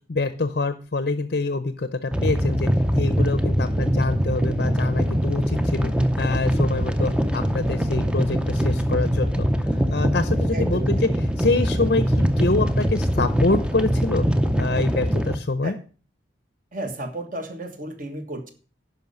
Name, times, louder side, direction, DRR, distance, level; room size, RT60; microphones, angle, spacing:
voice 1, 0.1-9.5 9.9-11.1 11.4-14.3 14.6-15.7, left 3 dB, 50° left, 11 dB, 0.6 m, -25 dB
sound 1, 2.1-15.4, equal, 5° right, 0.5 m, -22 dB
voice 2, 10.5-10.9 15.6-15.7 16.7-18.5, right 1 dB, 45° right, 7 dB, 1.4 m, -33 dB
10.5 x 5.5 x 5.4 m, 0.38 s
head